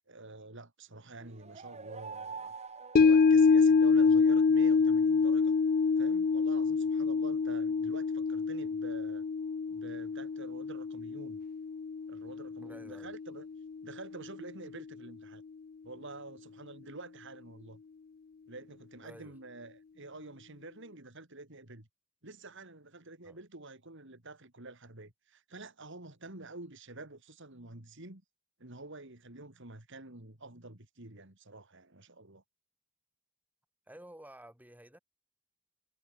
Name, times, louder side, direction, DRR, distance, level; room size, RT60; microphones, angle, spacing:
voice 1, 0.1-2.5 2.9-5.6 6.0-9.2 9.7-11.4 12.1-13.5 13.8-15.4 15.8-17.8 18.5-21.9 22.2-28.2 28.6-32.4, right 2 dB, 60° right, 3.4 m, -48 dB
sound 1, 1.2-4.1, right 5 dB, 30° right, 1.2 m, -46 dB
sound 2, 3.0-13.3 13.7-13.8, left 5 dB, 45° left, 0.4 m, -26 dB
voice 2, 12.6-13.1 19.0-19.4 23.2-23.4 33.9-35.0, right 1 dB, 10° right, 6.3 m, -52 dB
head